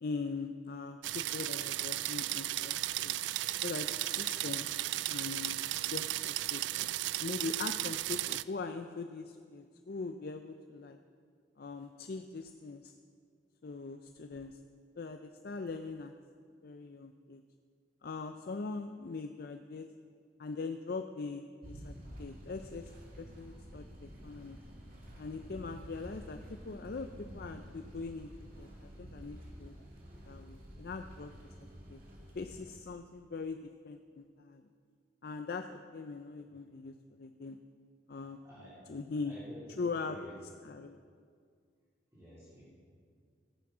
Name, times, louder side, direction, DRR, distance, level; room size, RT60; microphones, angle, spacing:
voice 1, 0.0-2.8 3.0-3.2 3.6-4.7 5.1-6.9 7.2-11.0 11.6-12.9 13.6-14.6 15.0-16.1 16.6-17.4 18.0-19.9 20.4-22.9 23.2-24.6 25.2-27.1 27.3-28.3 28.6-29.7 30.3-31.3 31.6-32.0 32.3-33.6 33.8-34.6 35.2-37.6 38.1-38.4 38.9-39.4 39.8-40.2 40.6-41.0, left 4 dB, 55° left, 7 dB, 0.5 m, -41 dB
sound 1, 1.0-8.4, right 15 dB, 75° right, 0.3 m, -35 dB
sound 2, 21.6-32.6, equal, 50° right, 2.7 m, -50 dB
voice 2, 39.2-40.3 42.1-42.6, left 1 dB, 15° right, -10 dB, 3.5 m, -51 dB
14.5 x 8.6 x 6.1 m, 2.1 s
head